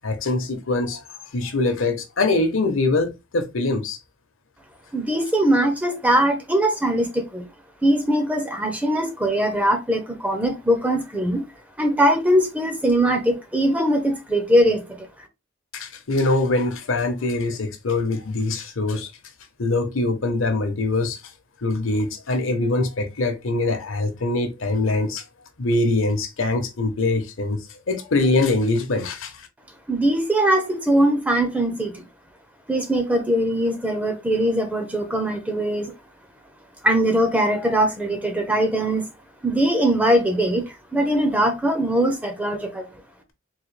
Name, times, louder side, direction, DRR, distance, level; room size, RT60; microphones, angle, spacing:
voice 1, 0.0-1.0 1.3-4.0 15.7-19.1 19.6-21.2 21.6-25.2 25.6-27.6 27.9-29.5, left 2 dB, 70° left, 0.8 m, -23 dB
voice 2, 4.9-7.4 7.8-11.4 11.8-15.1 29.9-32.0 32.7-35.9 36.8-39.1 39.4-42.9, right 1 dB, 5° right, 0.6 m, -21 dB
3.8 x 2.7 x 3.2 m
head